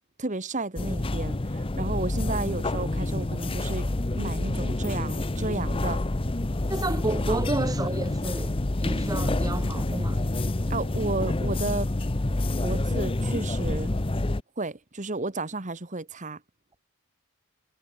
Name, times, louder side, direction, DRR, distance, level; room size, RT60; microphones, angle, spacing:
voice 1, 0.2-3.9 4.1-6.0 7.3-7.4 10.7-11.9 12.6-13.9 14.6-16.4, right 2 dB, 35° right, 1.4 m, -32 dB
sound 1, 0.8-14.4, left 2 dB, 25° left, 0.7 m, -28 dB
voice 2, 6.7-8.5 8.8-10.2, right 2 dB, 15° right, 0.7 m, -30 dB
head